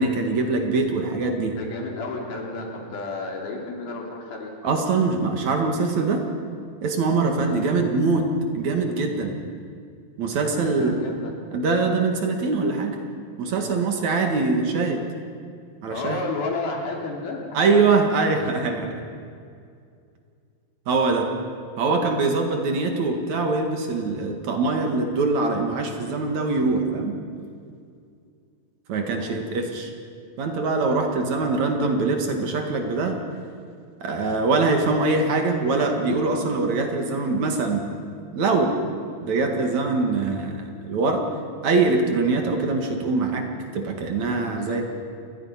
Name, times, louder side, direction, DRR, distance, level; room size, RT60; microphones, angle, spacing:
voice 1, 0.0-1.6 4.6-6.2 6.8-9.3 10.2-11.0 11.5-13.0 13.4-15.1 15.8-16.2 17.5-19.0 20.9-21.3 21.8-27.2 28.9-29.9 30.4-33.2 34.0-37.9 38.3-38.8 39.2-41.2 41.6-43.5 43.7-44.8, right 3 dB, 55° right, 3 dB, 2.9 m, -23 dB
voice 2, 1.5-4.5 7.4-7.6 10.4-11.3 15.9-18.0 29.1-29.4 44.5-44.8, left 3 dB, 85° left, 0 dB, 5.0 m, -32 dB
28.0 x 20.5 x 5.8 m, 2.3 s
omnidirectional pair, 4.2 m